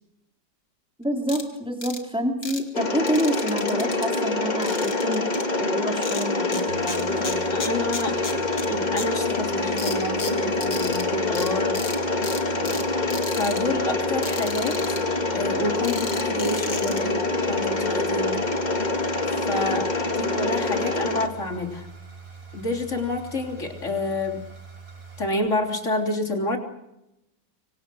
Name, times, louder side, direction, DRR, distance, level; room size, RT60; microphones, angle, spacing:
voice 1, 1.0-5.3 5.6-7.6, equal, 5° right, 3 dB, 3.5 m, -28 dB
sound 1, 1.3-1.4 1.8-2.0 2.4-2.6 3.1-4.2 4.6-5.4 6.0-6.6 6.9-8.7 9.0-9.1 9.8-11.0 11.3-11.5 11.7-12.0 12.2-12.8 13.1-13.6 14.2-15.0 15.8-17.0, left 4 dB, 70° left, 3.2 m, -34 dB
Mechanisms, 2.7-21.3, left 2 dB, 25° left, 1.8 m, -26 dB
sound 2, 6.7-25.3, right 5 dB, 60° right, 5.5 m, -43 dB
voice 2, 7.5-11.8 12.5-12.8 13.4-18.4 19.4-21.9 22.5-24.4 25.2-26.6, left 2 dB, 45° left, 4 dB, 3.7 m, -29 dB
26.0 x 25.0 x 6.3 m, 0.87 s
omnidirectional pair, 1.8 m